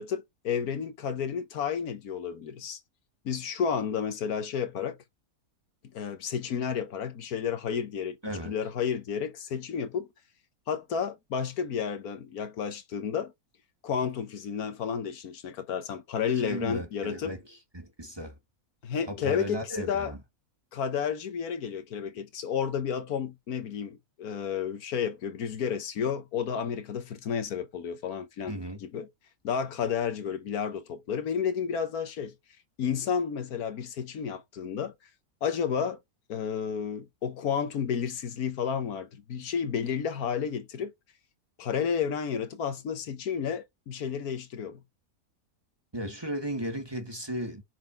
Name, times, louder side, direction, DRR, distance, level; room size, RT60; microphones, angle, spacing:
voice 1, 0.0-2.8 3.2-5.0 5.9-10.1 10.7-13.3 13.8-17.3 18.8-20.1 20.7-29.1 29.4-32.3 32.8-34.9 35.4-36.0 36.3-40.9 41.6-44.8, left 7 dB, 80° left, 1.5 m, -31 dB
voice 2, 8.2-8.5 16.4-17.4 17.7-18.3 19.1-20.2 28.5-28.8 45.9-47.6, right 1 dB, 15° right, 1.6 m, -35 dB
6.7 x 4.1 x 4.5 m
omnidirectional pair, 1.6 m